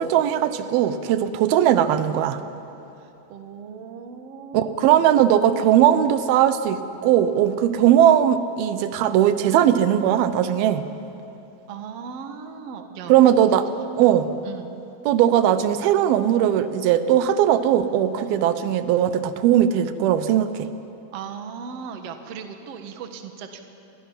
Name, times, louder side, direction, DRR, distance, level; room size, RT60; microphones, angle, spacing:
voice 1, 0.0-2.4 4.5-10.8 13.1-13.7 13.9-14.3 15.1-20.7, right 10 dB, 85° right, 11 dB, 2.7 m, -19 dB
voice 2, 3.0-5.1 11.7-13.1 13.4-13.5 14.0-14.7 18.2-18.3 21.1-23.6, right 6 dB, 55° right, 6 dB, 2.0 m, -38 dB
28.0 x 22.5 x 5.7 m, 2.8 s
omnidirectional pair, 4.3 m